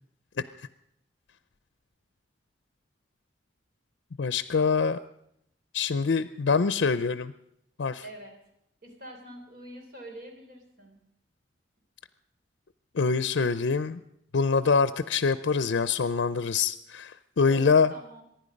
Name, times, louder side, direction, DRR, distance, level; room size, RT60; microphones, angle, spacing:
voice 1, 4.2-5.0 5.7-7.3 7.8-8.0 12.9-14.0 14.3-17.9, left 5 dB, 80° left, 13 dB, 0.5 m, -25 dB
voice 2, 8.0-8.4 8.8-11.0 17.4-18.2, right 1 dB, 55° right, 2 dB, 3.7 m, -45 dB
24.0 x 10.5 x 5.3 m, 0.78 s
head